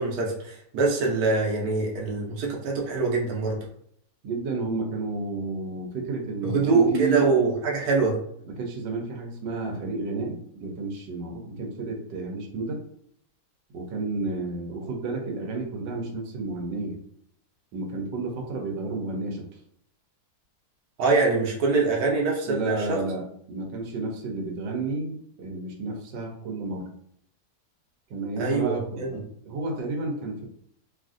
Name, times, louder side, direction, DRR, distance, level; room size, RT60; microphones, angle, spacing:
voice 1, 0.0-3.6 6.4-8.2 21.0-23.0 28.4-28.7 29.0-29.1, right 4 dB, 65° right, -1 dB, 1.1 m, -24 dB
voice 2, 4.2-7.3 8.4-12.8 13.7-17.0 17.7-19.5 22.5-26.9 28.1-30.5, right 3 dB, 90° right, 1 dB, 1.3 m, -31 dB
3.1 x 2.5 x 2.4 m, 0.67 s
omnidirectional pair, 1.9 m